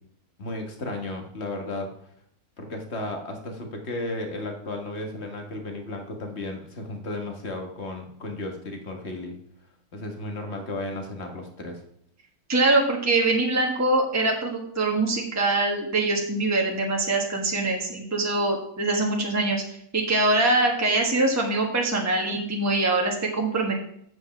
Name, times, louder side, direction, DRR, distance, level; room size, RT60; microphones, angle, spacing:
voice 1, 0.4-1.9 2.6-9.3 9.9-11.8, left 2 dB, 45° left, 4 dB, 1.7 m, -34 dB
voice 2, 12.5-19.6 19.9-23.8, right 2 dB, 10° right, 0 dB, 1.3 m, -23 dB
8.0 x 6.4 x 5.9 m, 0.67 s
omnidirectional pair, 1.6 m